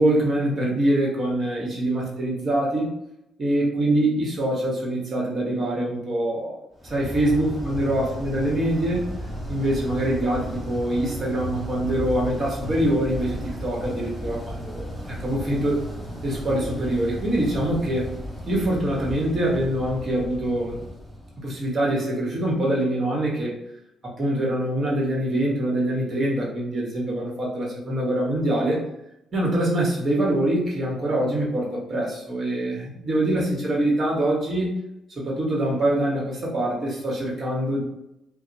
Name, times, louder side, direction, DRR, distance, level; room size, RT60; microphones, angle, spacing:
voice 1, 0.0-2.9 3.4-6.6 6.8-9.1 9.5-15.8 16.2-18.1 18.5-20.8 21.4-23.6 24.0-28.8 29.3-34.8 35.2-37.8, right 1 dB, 40° right, -3 dB, 1.1 m, -24 dB
sound 1, 6.8-21.8, equal, 15° right, 1.1 m, -34 dB
2.7 x 2.0 x 2.6 m, 0.83 s
cardioid pair, 90°, 0 cm